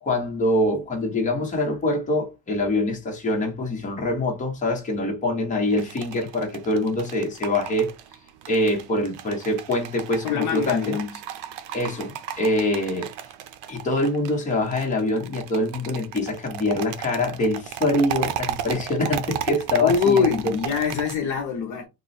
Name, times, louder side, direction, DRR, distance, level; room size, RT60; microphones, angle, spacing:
voice 1, 0.0-7.9 8.5-10.9 11.7-13.1 13.7-20.5, left 1 dB, 20° left, 0.9 m, -24 dB
sound 1, 5.7-21.1, right 10 dB, 90° right, 0.6 m, -35 dB
voice 2, 10.2-11.1 19.8-21.9, left 6 dB, 45° left, 0.7 m, -23 dB
3.1 x 2.2 x 4.1 m
cardioid pair, 175°, 41 cm